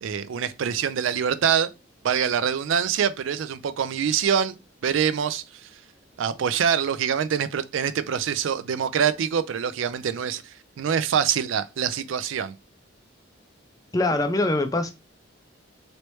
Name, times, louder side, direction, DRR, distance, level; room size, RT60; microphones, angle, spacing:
voice 1, 0.0-1.7 2.0-5.7 6.2-12.6, right 7 dB, 80° right, 0.4 m, -25 dB
voice 2, 13.9-14.9, left 2 dB, 20° left, 0.4 m, -23 dB
3.1 x 3.0 x 3.0 m
head